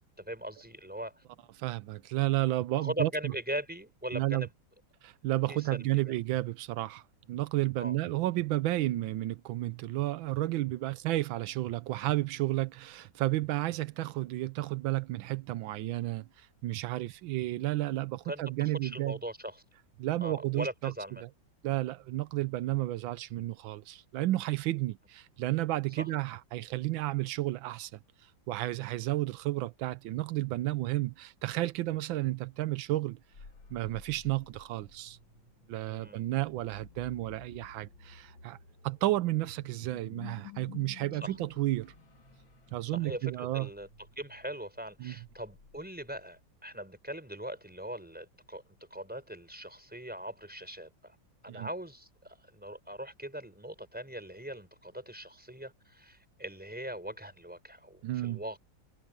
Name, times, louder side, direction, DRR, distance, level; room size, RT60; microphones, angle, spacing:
voice 1, 0.2-1.2 2.8-4.5 5.5-6.1 7.8-8.0 18.2-19.6 20.2-21.2 26.0-26.1 32.2-32.4 35.9-36.2 41.2-41.4 42.9-43.9 44.2-48.6 48.9-51.2 51.4-58.6, equal, 5° right, 4.6 m, -40 dB
voice 2, 1.6-3.3 4.1-4.5 5.0-7.0 7.3-19.2 20.0-20.9 21.6-28.0 28.5-33.2 33.7-35.2 35.7-38.6 38.8-41.9 42.7-43.7 45.0-45.1 51.5-51.7 58.0-58.4, right 16 dB, 85° right, 1.4 m, -32 dB
sound 1, 33.1-46.6, left 6 dB, 80° left, 3.9 m, -53 dB
omnidirectional pair, 2.1 m